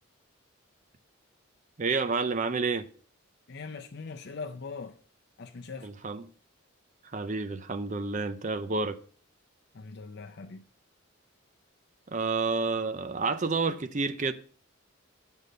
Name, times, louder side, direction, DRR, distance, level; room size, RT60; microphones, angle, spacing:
voice 1, 1.8-2.9 5.8-6.2 7.1-9.0 12.1-14.3, right 4 dB, 35° right, 0.5 m, -29 dB
voice 2, 3.5-5.0 5.4-5.9 9.7-10.6, left 4 dB, 55° left, 0.6 m, -41 dB
8.4 x 5.4 x 6.4 m
head